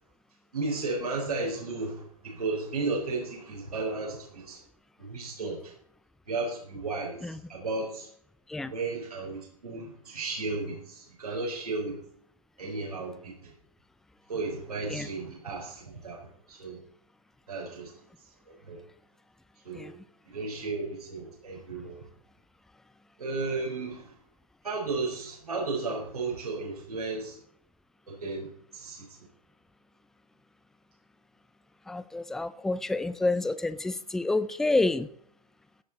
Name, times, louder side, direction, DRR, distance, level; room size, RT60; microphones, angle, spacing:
voice 1, 0.5-4.6 5.0-5.7 6.3-8.1 8.6-12.0 12.6-13.5 14.3-16.8 17.5-17.9 18.5-18.8 19.6-19.9 20.2-22.1 23.2-24.2 24.6-27.4 28.1-29.2, right 3 dB, 90° right, -2 dB, 4.7 m, -34 dB
voice 2, 31.9-35.1, left 2 dB, ahead, 13 dB, 0.4 m, -28 dB
16.5 x 9.6 x 4.2 m, 0.63 s
hypercardioid pair, 125°, 19 cm